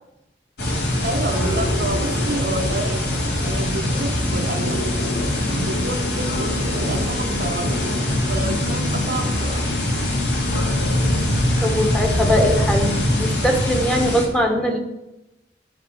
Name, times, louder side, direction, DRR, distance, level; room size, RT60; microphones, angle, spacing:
sound 1, 0.6-14.2, left 1 dB, 60° left, 2.6 m, -22 dB
voice 1, 1.0-4.9 5.5-7.9 8.3-9.8, right 2 dB, 50° right, 4 dB, 1.1 m, -29 dB
voice 2, 11.6-14.8, equal, 5° left, 2 dB, 1.3 m, -21 dB
9.9 x 5.2 x 8.0 m, 0.92 s
head